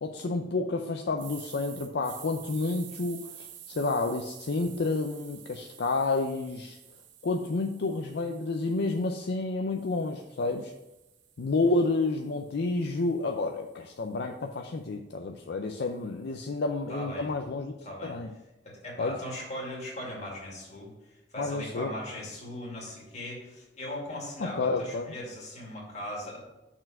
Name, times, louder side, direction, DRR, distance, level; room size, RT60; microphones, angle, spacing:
voice 1, 0.0-6.8 7.2-10.7 11.4-17.7 18.0-18.3 19.0-19.2 21.4-21.9 24.4-25.1, left 3 dB, 60° left, 4 dB, 0.5 m, -30 dB
sound 1, 1.2-9.2 9.7-13.9, right 10 dB, 80° right, 0.7 m, -50 dB
voice 2, 16.9-17.3 17.8-18.2 18.6-20.9 21.3-26.4, left 1 dB, 40° left, -3 dB, 2.3 m, -39 dB
6.5 x 4.4 x 5.8 m, 0.98 s
head